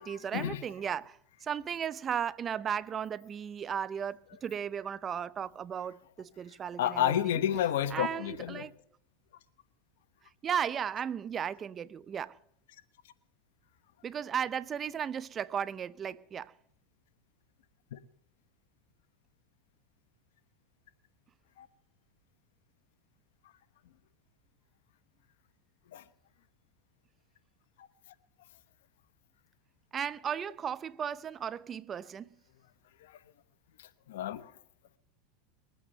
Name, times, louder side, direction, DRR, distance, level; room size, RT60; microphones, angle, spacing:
voice 1, 0.0-7.4 7.9-8.7 10.4-12.4 14.0-16.5 29.9-32.3, right 8 dB, 30° right, 0.5 m, -35 dB
voice 2, 6.8-8.7 17.9-18.0 21.6-21.7 25.9-26.0 33.0-33.1 34.1-34.5, left 11 dB, 80° left, 1.1 m, -30 dB
21.5 x 8.6 x 6.6 m
hypercardioid pair, 110°, 0 cm